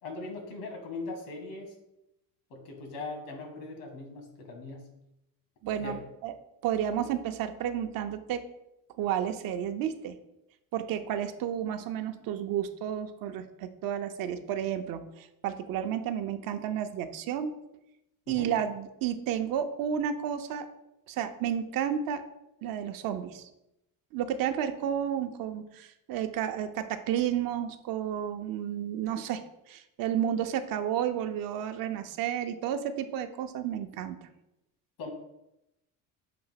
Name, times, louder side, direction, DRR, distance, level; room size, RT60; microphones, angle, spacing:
voice 1, 0.0-1.7 2.5-4.9 5.8-6.0 18.3-18.5 35.0-35.1, left 3 dB, 85° left, 3 dB, 1.9 m, -40 dB
voice 2, 5.6-6.3 6.6-8.4 9.0-10.2 10.7-17.5 18.3-20.7 21.1-22.2 22.6-23.5 24.1-34.2, right 9 dB, 70° right, 8 dB, 0.7 m, -31 dB
6.9 x 2.9 x 5.7 m, 0.87 s
cardioid pair, 140°, 36 cm